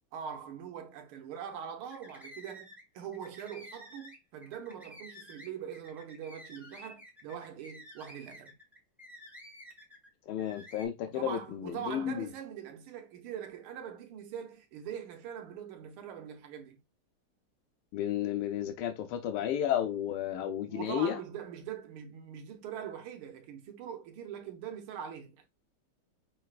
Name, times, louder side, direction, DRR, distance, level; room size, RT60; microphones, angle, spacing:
voice 1, 0.1-8.5 11.0-16.8 20.6-25.4, right 8 dB, 75° right, 1.7 m, -42 dB
sound 1, 1.8-2.8 3.1-10.1 10.4-10.9, left 1 dB, ahead, 0.7 m, -51 dB
voice 2, 10.3-12.3 17.9-21.2, left 10 dB, 85° left, 1.5 m, -32 dB
5.4 x 3.2 x 2.4 m
omnidirectional pair, 2.4 m